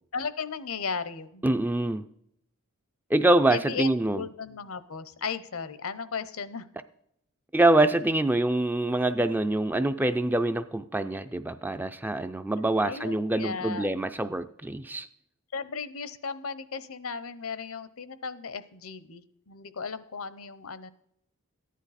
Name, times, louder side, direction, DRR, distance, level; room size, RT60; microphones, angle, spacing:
voice 1, 0.1-1.4 3.5-6.7 12.8-13.8 15.5-20.9, left 5 dB, 70° left, 14 dB, 0.7 m, -35 dB
voice 2, 1.4-2.1 3.1-4.2 7.5-15.1, right 2 dB, 10° right, 10 dB, 0.3 m, -25 dB
14.5 x 10.0 x 4.1 m, 0.74 s
head